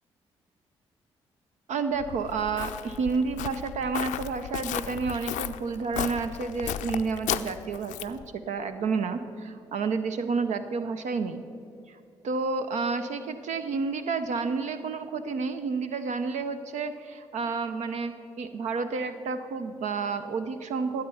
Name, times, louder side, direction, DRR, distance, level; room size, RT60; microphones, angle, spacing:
voice 1, 1.7-11.4 11.9-12.0 12.2-21.0, right 4 dB, 65° right, 9 dB, 0.6 m, -30 dB
Walk footsteps, 2.0-8.3, left 12 dB, 75° left, 0.4 m, -35 dB
13.0 x 7.9 x 5.5 m, 2.5 s
hypercardioid pair, 40°, 13 cm